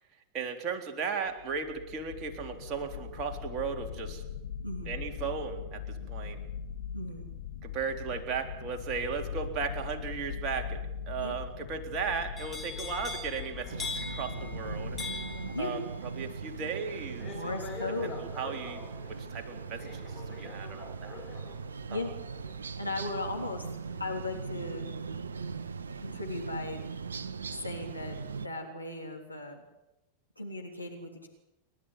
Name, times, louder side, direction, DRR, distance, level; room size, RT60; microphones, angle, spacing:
voice 1, 0.3-4.2 4.9-6.4 7.6-15.3 15.6-17.5 18.0-18.8 19.1-21.1 21.9-22.1, right 5 dB, 35° right, 3 dB, 3.9 m, -36 dB
sound 1, 1.3-15.6, left 7 dB, 65° left, 1.6 m, -41 dB
voice 2, 4.6-5.0 6.9-7.3 11.2-11.4 15.5-15.7 17.3-18.2 21.9-22.1 22.8-23.6 24.0-24.9 26.0-26.8 27.5-29.6 30.4-31.3, left 2 dB, 85° left, 1 dB, 3.3 m, -37 dB
sound 2, 12.4-24.3 24.7-25.1, left 4 dB, 20° left, 4.5 m, -44 dB
sound 3, 13.7-28.5, right 5 dB, 70° right, 0.9 m, -40 dB
29.5 x 12.0 x 9.8 m, 0.93 s
figure-of-eight pair, 90°, 0 cm